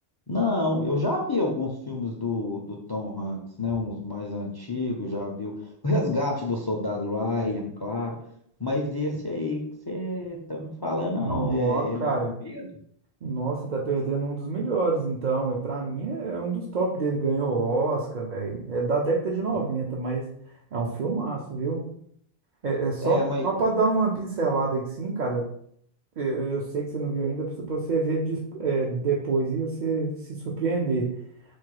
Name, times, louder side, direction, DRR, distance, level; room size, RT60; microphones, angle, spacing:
voice 1, 0.3-2.6 2.9-8.2 8.6-12.7 19.5-19.6 23.0-23.5, left 2 dB, 30° left, 0 dB, 0.5 m, -28 dB
voice 2, 11.2-12.3 13.2-20.2 20.7-21.8 22.6-25.4 26.2-31.1, right 3 dB, 50° right, -3 dB, 0.7 m, -27 dB
4.5 x 2.2 x 4.6 m, 0.67 s
omnidirectional pair, 1.1 m